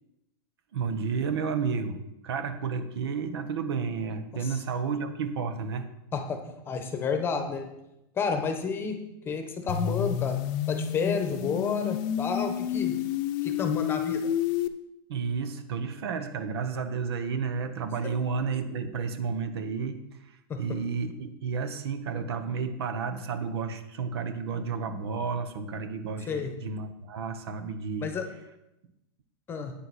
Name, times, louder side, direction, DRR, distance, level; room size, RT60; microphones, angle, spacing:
voice 1, 0.7-5.9 12.9-13.0 15.1-28.1, right 5 dB, 90° right, 9 dB, 1.2 m, -32 dB
voice 2, 6.1-7.7 8.1-9.0 9.2-10.4 10.7-12.9 13.4-14.3 20.5-20.6 26.3-26.5 28.0-28.2 29.5-29.7, left 5 dB, 15° left, 6 dB, 1.0 m, -30 dB
sound 1, 9.7-14.7, left 10 dB, 50° left, 0.6 m, -30 dB
9.4 x 8.7 x 4.2 m, 0.89 s
supercardioid pair, 155°, 13 cm